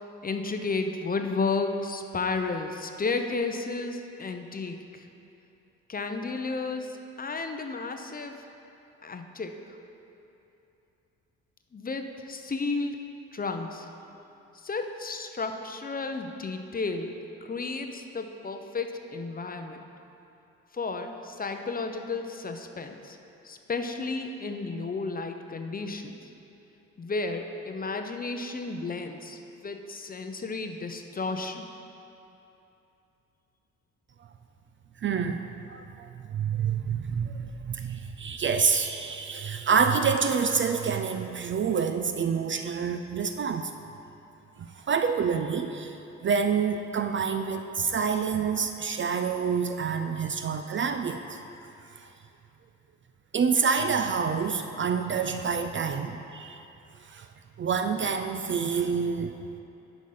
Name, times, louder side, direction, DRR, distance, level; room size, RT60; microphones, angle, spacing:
voice 1, 0.2-5.1 5.9-8.4 9.0-9.6 11.7-13.9 14.5-19.9 20.7-23.2 23.4-26.2 27.0-31.7, left 3 dB, 25° left, 6 dB, 0.6 m, -33 dB
voice 2, 35.0-43.7 44.8-46.0 46.2-51.4 53.3-56.6 57.1-57.3 57.6-59.3, right 6 dB, 35° right, 7 dB, 0.4 m, -27 dB
7.7 x 5.0 x 5.5 m, 2.9 s
supercardioid pair, 65°, 33 cm